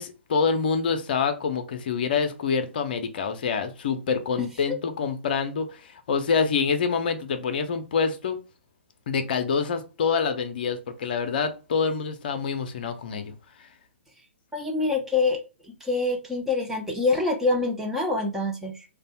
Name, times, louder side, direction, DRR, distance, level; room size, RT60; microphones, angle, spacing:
voice 1, 0.0-8.4 9.1-13.3, left 5 dB, 50° left, 0.5 m, -26 dB
voice 2, 4.4-4.8 14.5-15.4 15.8-18.9, left 3 dB, 5° right, 0.5 m, -26 dB
3.3 x 2.2 x 4.1 m
figure-of-eight pair, 120°, 7 cm